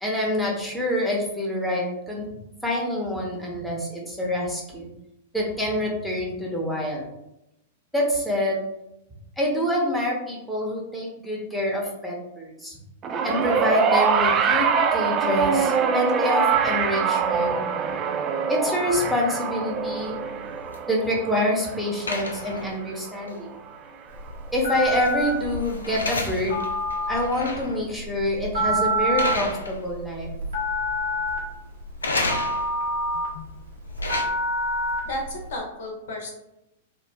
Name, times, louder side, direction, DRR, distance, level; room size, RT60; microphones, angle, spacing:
voice 1, 0.0-2.3 2.6-4.9 5.3-7.0 7.9-8.6 9.4-12.8 13.2-17.6 18.5-20.2 20.9-23.5 24.5-26.6 27.1-30.3, left 1 dB, ahead, -3 dB, 1.0 m, -26 dB
sound 1, 13.0-23.5 24.5-24.6, right 6 dB, 30° right, 0.3 m, -24 dB
sound 2, 19.7-21.5 22.1-23.0 23.3-23.4 24.6-27.8 28.2-28.5 29.2-30.2 30.4-31.0 32.0-32.9 33.7-34.2, left 2 dB, 85° left, 0.5 m, -32 dB
Telephone, 24.1-35.5, equal, 70° right, 1.1 m, -28 dB
voice 2, 35.0-36.3, left 1 dB, 60° left, 0 dB, 0.8 m, -33 dB
2.9 x 2.3 x 3.4 m, 0.88 s
figure-of-eight pair, 100°, 0 cm